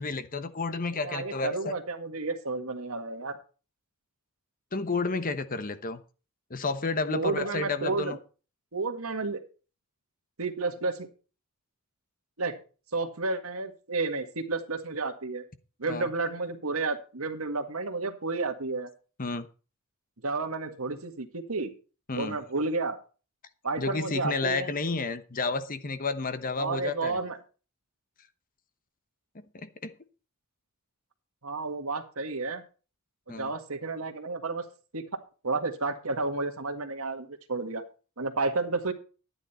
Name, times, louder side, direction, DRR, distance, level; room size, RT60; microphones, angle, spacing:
voice 1, 0.0-1.8 4.7-6.0 6.5-8.2 15.9-16.1 19.2-19.5 22.1-22.4 23.8-27.2 29.5-29.9 33.3-33.5, left 3 dB, 40° left, 12 dB, 1.0 m, -31 dB
voice 2, 0.9-3.4 7.1-8.2 8.7-9.4 10.4-11.1 12.4-12.6 12.9-15.4 15.8-18.9 20.2-21.7 22.1-23.0 23.6-24.7 26.6-27.4 31.4-32.6 33.3-34.6 34.9-35.1 35.4-37.8 38.2-38.9, right 3 dB, 80° right, 7 dB, 1.8 m, -31 dB
12.0 x 9.8 x 4.3 m, 0.35 s
head